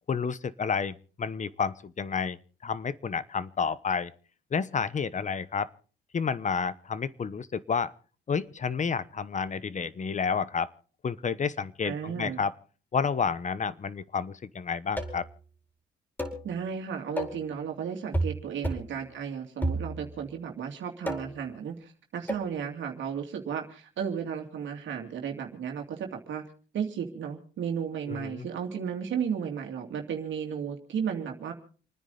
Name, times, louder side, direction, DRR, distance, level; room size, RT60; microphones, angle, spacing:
voice 1, 0.1-2.4 2.6-4.1 4.5-5.7 6.1-7.9 8.3-10.7 11.0-12.5 12.9-15.3 28.1-28.5, left 6 dB, 40° left, 17 dB, 1.1 m, -30 dB
voice 2, 11.8-12.4 16.4-26.4 26.7-31.5, right 7 dB, 70° right, 3 dB, 2.7 m, -34 dB
sound 1, 15.0-15.3 16.2-16.5 17.2-17.5 18.1-18.4 18.6-18.9 19.6-20.2 21.1-21.5 22.3-22.5, right 1 dB, 10° left, 4.6 m, -31 dB
29.0 x 9.9 x 4.0 m, 0.40 s
cardioid pair, 90°, 20 cm